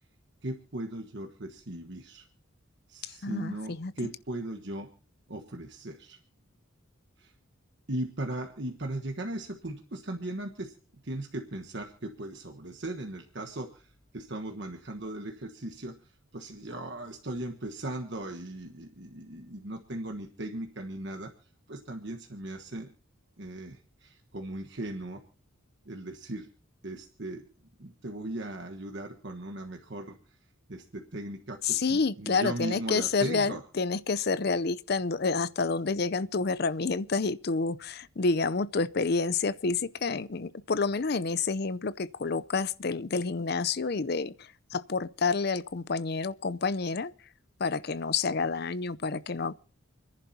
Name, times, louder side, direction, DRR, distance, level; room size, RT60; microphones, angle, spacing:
voice 1, 0.4-2.3 2.9-4.9 5.3-6.2 7.2-7.3 7.9-10.7 11.0-21.3 21.7-22.9 23.4-25.2 25.8-26.5 26.8-27.5 27.8-30.4 30.7-33.6, right 1 dB, 55° right, 1.3 m, -38 dB
voice 2, 3.0-3.9 31.6-47.1 47.6-49.5, left 4 dB, 50° left, 0.6 m, -29 dB
29.0 x 11.0 x 2.8 m
head